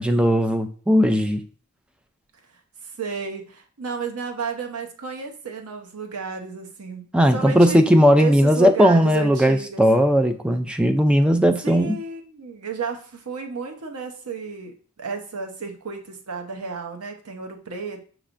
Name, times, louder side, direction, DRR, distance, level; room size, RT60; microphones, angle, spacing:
voice 1, 0.0-1.4 7.1-12.0, equal, 5° right, 0.3 m, -17 dB
voice 2, 2.8-7.8 8.2-9.8 11.6-18.0, right 5 dB, 80° right, 0.7 m, -32 dB
6.0 x 3.2 x 2.5 m
head